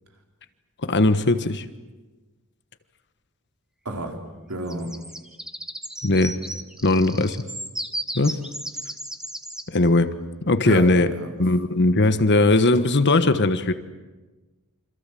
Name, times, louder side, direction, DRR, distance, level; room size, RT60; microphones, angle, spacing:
voice 1, 0.8-1.6 6.0-6.4 6.8-7.5 8.1-8.4 9.7-10.1 10.5-11.1 11.4-13.7, left 2 dB, 50° left, 11 dB, 1.3 m, -19 dB
voice 2, 3.8-4.9 10.6-10.8 11.1-11.3, right 1 dB, 75° right, 2 dB, 4.4 m, -30 dB
sound 1, 4.7-9.7, right 1 dB, 5° right, 1.5 m, -35 dB
27.5 x 26.0 x 7.7 m, 1.2 s
head